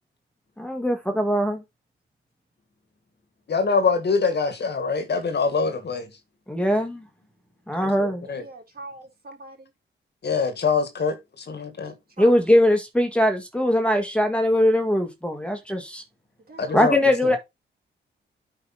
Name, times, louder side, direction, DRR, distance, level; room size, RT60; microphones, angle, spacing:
voice 1, 0.6-1.6 6.5-7.0 7.7-8.3 12.2-16.0 16.7-17.4, left 1 dB, 5° left, 1.9 m, -21 dB
voice 2, 3.5-6.1 7.8-8.4 10.2-11.2 11.5-11.9 16.6-17.0, left 4 dB, 55° left, 1.8 m, -24 dB
voice 3, 8.2-9.7 11.8-12.4 16.5-16.9 17.2-17.4, right 2 dB, 45° right, 3.8 m, -43 dB
8.6 x 5.1 x 4.2 m
cardioid pair, 75°, 21 cm